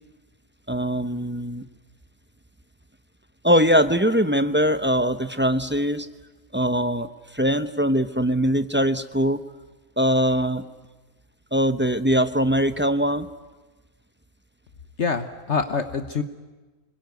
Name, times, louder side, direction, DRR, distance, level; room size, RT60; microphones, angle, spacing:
voice 1, 0.7-1.6 3.4-6.1 6.5-9.4 10.0-10.6 11.5-13.3, equal, 10° right, 10 dB, 0.6 m, -22 dB
voice 2, 15.0-16.2, left 5 dB, 50° left, 8 dB, 1.4 m, -25 dB
25.5 x 22.0 x 9.5 m, 1.2 s
omnidirectional pair, 1.6 m